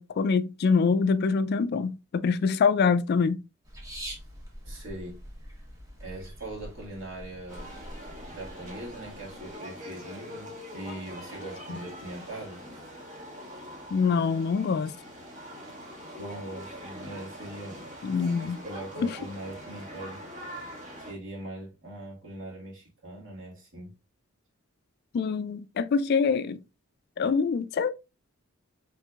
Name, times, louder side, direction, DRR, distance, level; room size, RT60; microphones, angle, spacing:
voice 1, 0.0-3.4 11.7-11.8 13.9-14.9 18.0-18.6 19.0-19.2 25.1-26.6 27.2-27.9, left 5 dB, 50° left, 0.3 m, -25 dB
sound 1, 3.6-9.5, equal, 15° right, 1.0 m, -44 dB
voice 2, 4.6-5.2 6.0-7.7 8.3-12.6 16.2-17.9 18.4-20.2 21.1-23.9, right 1 dB, 65° right, 1.9 m, -41 dB
sound 2, 7.5-21.1, equal, 40° right, 1.3 m, -43 dB
4.5 x 3.4 x 2.4 m
head